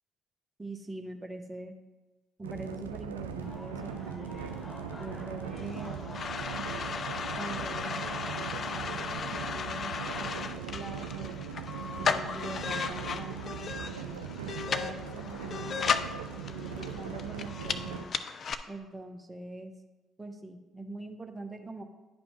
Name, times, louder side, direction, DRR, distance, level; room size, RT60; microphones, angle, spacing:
voice 1, 0.6-1.7 2.4-4.4 5.0-6.1 7.4-11.4 12.0-14.2 14.7-16.0 16.3-18.2 18.7-19.7 20.2-21.8, right 2 dB, 15° right, 5 dB, 0.8 m, -43 dB
sound 1, 2.4-18.0, right 7 dB, 90° right, 0.4 m, -39 dB
sound 2, 3.4-9.0, left 1 dB, 30° left, 1.0 m, -48 dB
sound 3, 5.6-18.5, left 6 dB, 50° left, 0.4 m, -35 dB
10.5 x 5.2 x 3.0 m, 1.1 s
hypercardioid pair, 50°, 0 cm